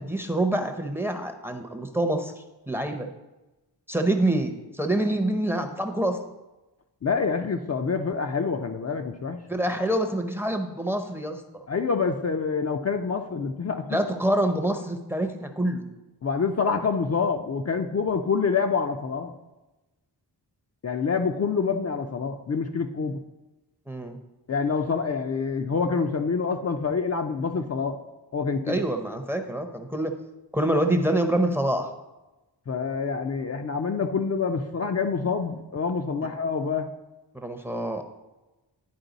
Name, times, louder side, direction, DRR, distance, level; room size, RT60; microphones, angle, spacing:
voice 1, 0.0-3.1 3.9-6.2 9.5-11.4 13.9-15.9 23.9-24.2 28.7-30.1 30.5-31.9 37.3-38.0, right 1 dB, 5° right, 6 dB, 0.6 m, -26 dB
voice 2, 7.0-9.4 11.7-14.0 16.2-19.3 20.8-23.2 24.5-28.0 28.3-28.8 32.7-36.9, left 5 dB, 40° left, 4 dB, 0.4 m, -26 dB
10.5 x 4.5 x 3.9 m, 1.1 s
wide cardioid pair, 110°, 43 cm